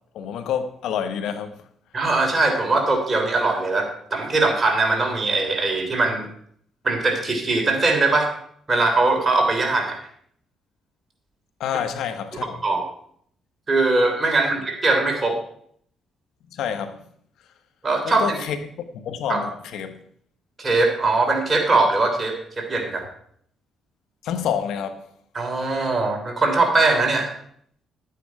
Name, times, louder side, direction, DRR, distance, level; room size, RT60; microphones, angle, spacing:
voice 1, 0.1-1.6 11.6-12.6 16.5-17.0 18.0-18.6 18.9-20.0 24.2-25.0, left 8 dB, 80° left, 1.2 m, -28 dB
voice 2, 1.9-6.3 6.8-8.3 8.7-10.0 12.4-12.8 13.7-15.4 17.8-18.4 19.3-19.4 20.6-23.0 25.4-27.3, right 3 dB, 30° right, 3.3 m, -21 dB
11.5 x 9.1 x 4.8 m
cardioid pair, 90°, 0 cm